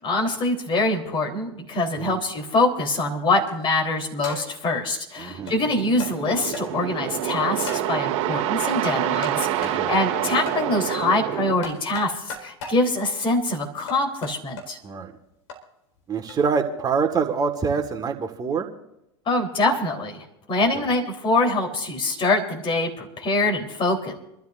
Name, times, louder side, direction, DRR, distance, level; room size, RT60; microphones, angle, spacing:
voice 1, 0.0-14.8 19.3-24.1, left 2 dB, 35° left, 2 dB, 3.7 m, -24 dB
sound 1, 3.3-3.6 4.2-4.7 5.5-5.6 6.0-6.1 6.5-6.6 7.7-7.9 8.8-9.4 9.6-9.8 10.4-10.6 11.6-12.8 13.9-14.6 15.5-15.6 16.3-16.4, left 3 dB, 75° left, 4.4 m, -35 dB
voice 2, 5.2-5.5 9.6-9.9 14.8-15.1 16.1-18.7 20.8-20.9, right 5 dB, 25° right, 3 dB, 1.7 m, -25 dB
sound 2, 5.3-11.5, right 11 dB, 55° right, 2.1 m, -27 dB
28.0 x 13.0 x 2.6 m, 0.85 s
hypercardioid pair, 95°, 16 cm